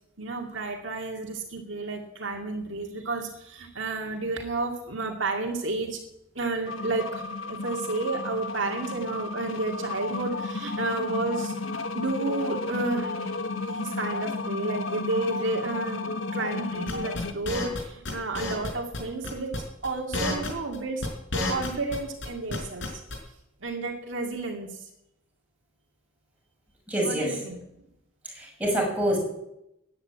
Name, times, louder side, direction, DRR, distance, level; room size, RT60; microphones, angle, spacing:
voice 1, 0.2-6.0 6.4-11.5 11.9-19.5 19.8-21.1 21.5-23.0 23.6-24.8 27.0-27.6, right 3 dB, 65° right, 2 dB, 2.2 m, -31 dB
sound 1, 6.7-17.3, left 3 dB, 85° left, 1.4 m, -33 dB
sound 2, 16.9-17.8 18.0-18.7 18.9-19.0 19.2-19.6 19.8-22.0 22.2-23.1, left 2 dB, 65° left, 4.6 m, -30 dB
voice 2, 26.9-27.3 28.4-29.2, right 1 dB, 5° right, -2 dB, 6.4 m, -26 dB
15.0 x 10.0 x 8.6 m, 0.83 s
head